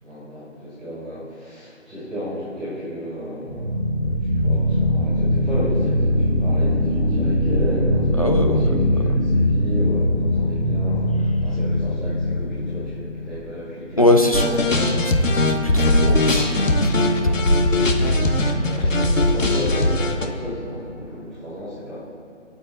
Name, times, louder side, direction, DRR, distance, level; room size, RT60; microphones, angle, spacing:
voice 1, 0.0-14.5 17.9-22.0, equal, ahead, -19 dB, 2.2 m, -33 dB
sound 1, 3.5-13.3, left 1 dB, 20° right, 1.4 m, -21 dB
voice 2, 8.2-9.2 14.0-17.9, left 1 dB, 30° left, 3 dB, 0.8 m, -23 dB
sound 2, 14.3-20.3, left 1 dB, 85° left, 2.1 m, -19 dB
24.0 x 8.4 x 4.0 m, 2.8 s
figure-of-eight pair, 175°, 38 cm